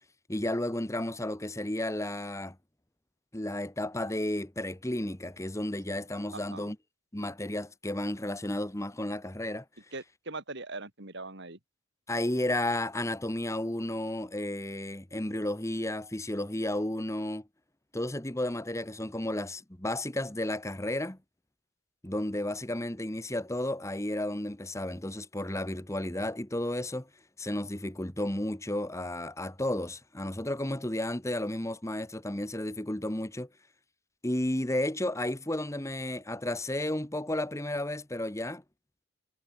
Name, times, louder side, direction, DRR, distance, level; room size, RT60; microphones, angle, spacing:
voice 1, 0.3-2.6 3.3-6.8 7.1-9.6 12.1-17.5 17.9-21.2 22.0-27.1 27.4-33.5 34.2-38.6, left 1 dB, 15° left, 1.4 m, -32 dB
voice 2, 6.3-6.7 9.9-11.6, right 3 dB, 55° right, 4.5 m, -41 dB
head